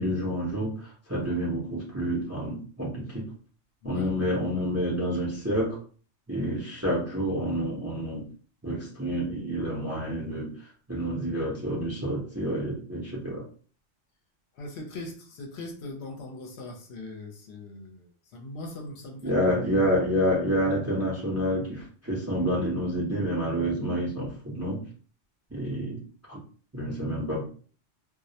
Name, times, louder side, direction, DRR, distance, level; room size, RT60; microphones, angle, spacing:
voice 1, 0.0-3.3 3.8-5.8 6.3-8.2 8.6-10.5 10.9-13.4 19.2-24.8 25.5-26.0 26.3-26.4 26.7-27.5, equal, 20° right, 0.5 m, -28 dB
voice 2, 14.6-19.4, left 2 dB, 70° left, 0.8 m, -40 dB
2.3 x 2.0 x 2.7 m
omnidirectional pair, 1.2 m